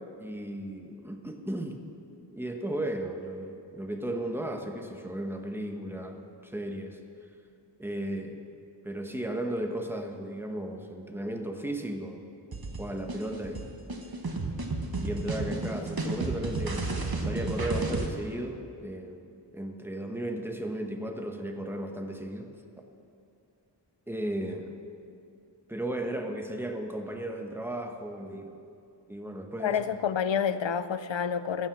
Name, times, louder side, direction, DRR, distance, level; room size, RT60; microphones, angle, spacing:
voice 1, 0.0-1.8 2.3-7.0 7.8-8.4 8.8-12.3 12.8-13.7 15.0-22.6 24.1-24.8 25.7-28.6 29.1-29.8, right 1 dB, 5° right, 4 dB, 1.1 m, -35 dB
sound 1, 12.5-18.1, right 2 dB, 55° right, 1.2 m, -32 dB
voice 2, 29.6-31.7, left 7 dB, 85° left, 13 dB, 0.6 m, -28 dB
15.0 x 7.4 x 6.1 m, 2.5 s
wide cardioid pair, 40°, 44 cm